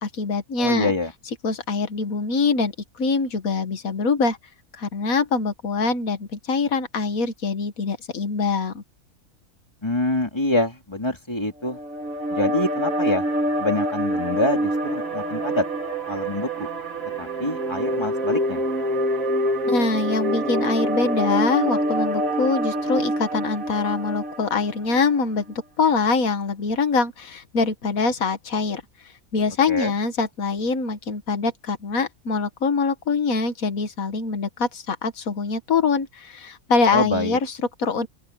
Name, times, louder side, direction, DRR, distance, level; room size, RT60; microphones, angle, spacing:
voice 1, 0.0-0.9 1.4-2.7 3.0-4.4 4.7-8.8 19.7-25.5 25.8-28.8 29.3-38.1, left 4 dB, 80° left, 1.9 m, -24 dB
voice 2, 0.6-1.1 9.8-11.8 12.3-13.2 13.6-15.6 16.1-16.7 17.2-18.6 29.7-29.9 36.9-37.4, left 1 dB, 20° left, 2.9 m, -25 dB
sound 1, 11.7-25.0, right 1 dB, 75° right, 3.1 m, -26 dB
open air
omnidirectional pair, 1.4 m